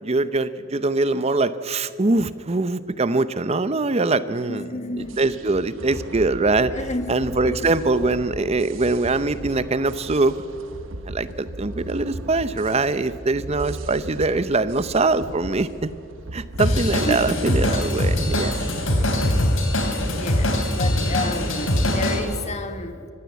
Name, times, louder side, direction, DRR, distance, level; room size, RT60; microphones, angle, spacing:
voice 1, 0.0-6.7 7.1-10.4 11.0-15.9 16.3-18.7, right 3 dB, 30° right, 14 dB, 0.7 m, -23 dB
voice 2, 4.3-5.2 6.7-7.7 17.0-17.4 19.5-19.6 20.0-23.1, left 2 dB, 35° left, 9 dB, 1.4 m, -31 dB
sound 1, 5.0-20.1, right 1 dB, 75° right, 1.2 m, -37 dB
Drum kit / Drum, 16.6-22.2, left 1 dB, 85° left, 3.5 m, -22 dB
24.5 x 15.5 x 8.2 m, 2.4 s
head